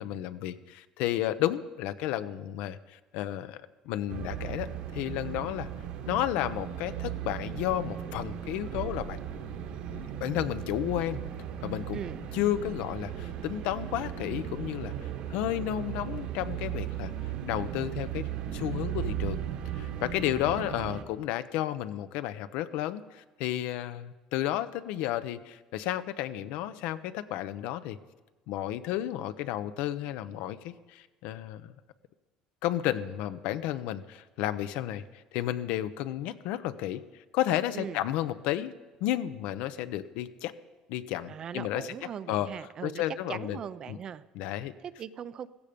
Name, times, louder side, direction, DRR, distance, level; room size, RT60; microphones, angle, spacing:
voice 1, 0.0-5.7 6.1-9.2 9.9-11.2 11.6-12.0 12.3-17.1 17.5-19.4 19.7-28.0 28.5-31.7 32.6-35.0 35.3-37.0 37.3-38.7 39.0-40.5 40.9-41.9 42.3-42.5 42.8-43.6 43.9-44.0 44.4-44.7, left 13 dB, 75° left, 13 dB, 0.7 m, -32 dB
sound 1, 4.1-21.0, right 10 dB, 65° right, 1.7 m, -37 dB
voice 2, 20.3-20.7 37.7-38.0 41.3-44.2 44.8-45.5, right 8 dB, 35° right, 15 dB, 0.5 m, -40 dB
15.5 x 15.5 x 5.2 m, 1.2 s
cardioid pair, 155°, 2 cm